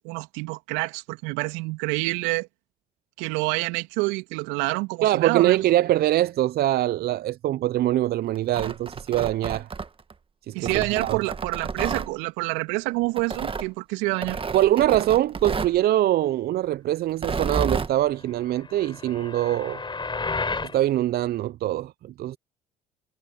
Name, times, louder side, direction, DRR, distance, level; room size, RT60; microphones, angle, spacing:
voice 1, 0.0-2.5 3.2-5.7 10.5-14.4, right 25 dB, 75° right, 3.0 m, -27 dB
voice 2, 5.0-9.7 10.5-11.2 14.5-19.8 20.7-22.4, right 14 dB, 55° right, 0.8 m, -23 dB
Tearing, 8.4-10.1 10.6-12.1 13.2-13.7 14.2-15.8 17.1-17.9, right 5 dB, 25° right, 1.8 m, -30 dB
sound 1, 18.5-20.8, left 4 dB, 25° left, 5.9 m, -32 dB
hypercardioid pair, 60°, 19 cm